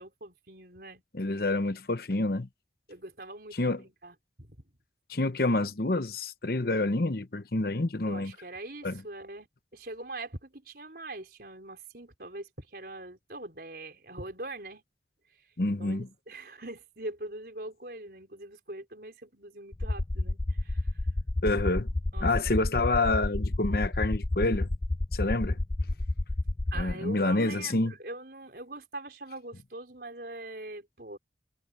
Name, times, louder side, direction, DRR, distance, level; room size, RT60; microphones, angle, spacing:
voice 1, 0.0-1.0 1.4-1.5 2.9-4.6 8.1-9.5 9.7-14.8 15.4-15.5 15.8-21.0 22.1-22.3 22.6-22.7 26.7-31.2, right 2 dB, 55° right, 5.2 m, -42 dB
voice 2, 1.1-2.5 3.6-3.8 5.1-8.3 8.8-9.0 15.6-16.1 21.4-21.9 22.2-24.7 25.1-25.6 26.7-27.9, left 2 dB, 55° left, 1.0 m, -28 dB
sound 1, 19.7-26.9, left 2 dB, 20° left, 0.3 m, -30 dB
head